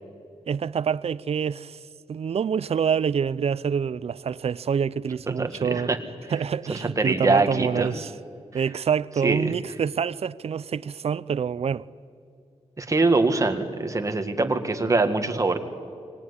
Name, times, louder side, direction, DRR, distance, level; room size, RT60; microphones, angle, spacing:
voice 1, 0.5-1.8 2.1-5.9 6.3-8.1 8.5-11.8, right 7 dB, 55° right, 0.5 m, -26 dB
voice 2, 5.3-6.0 6.7-7.9 8.5-8.6 9.2-9.5 12.8-15.6, right 3 dB, 25° right, 1.8 m, -23 dB
24.5 x 19.0 x 9.7 m
wide cardioid pair, 160°, 12 cm